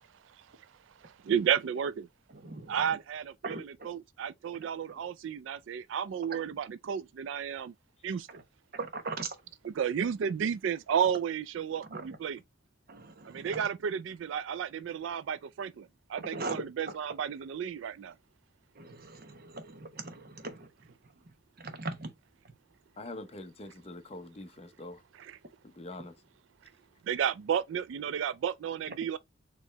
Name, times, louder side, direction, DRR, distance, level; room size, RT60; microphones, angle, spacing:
voice 1, 1.0-2.1 2.7-7.7 8.0-8.4 9.6-12.4 13.3-18.1 25.2-25.4 27.0-29.2, right 8 dB, 75° right, 0.3 m, -32 dB
voice 2, 2.4-2.7 3.4-3.6 8.7-9.3 11.9-12.0 12.9-13.6 16.3-16.6 18.8-20.7 21.6-22.1, right 3 dB, 50° right, 0.9 m, -39 dB
voice 3, 23.0-25.0 25.6-26.2, left 2 dB, 30° left, 0.7 m, -44 dB
4.5 x 3.0 x 3.3 m
head